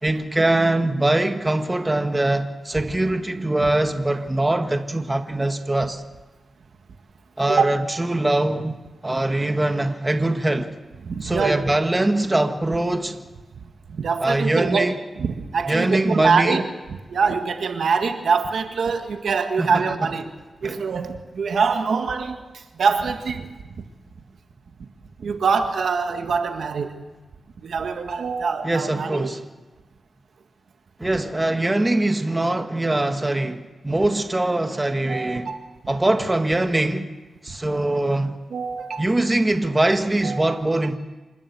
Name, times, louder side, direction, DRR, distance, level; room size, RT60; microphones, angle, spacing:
voice 1, 0.0-6.0 7.4-8.8 9.0-10.7 11.2-13.2 14.2-15.0 15.7-16.6 19.6-19.8 20.6-20.8 28.6-29.4 31.0-35.5 35.9-37.1 37.4-38.4 39.0-41.0, right 2 dB, 20° right, 1.6 m, -22 dB
voice 2, 11.0-11.6 13.9-16.6 17.1-20.2 20.6-22.4 22.8-23.5 25.2-27.0 27.6-29.3 35.0-35.6 38.5-39.0 40.2-40.6, right 5 dB, 80° right, 1.8 m, -24 dB
27.0 x 12.5 x 8.5 m
cardioid pair, 65°, 0 cm